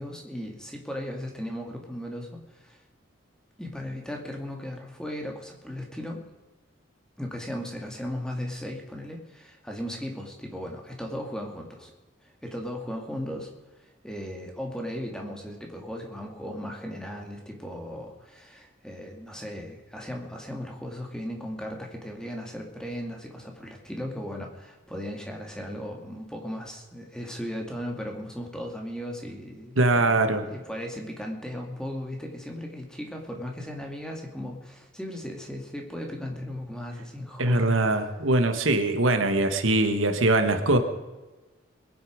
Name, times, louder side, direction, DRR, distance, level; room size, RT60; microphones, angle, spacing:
voice 1, 0.0-2.8 3.6-6.2 7.2-11.9 12.2-13.5 13.8-37.7, equal, 5° left, 2 dB, 2.2 m, -36 dB
voice 2, 29.8-30.4 37.4-40.8, right 2 dB, 90° right, 7 dB, 1.6 m, -22 dB
21.5 x 9.6 x 5.1 m, 1.2 s
head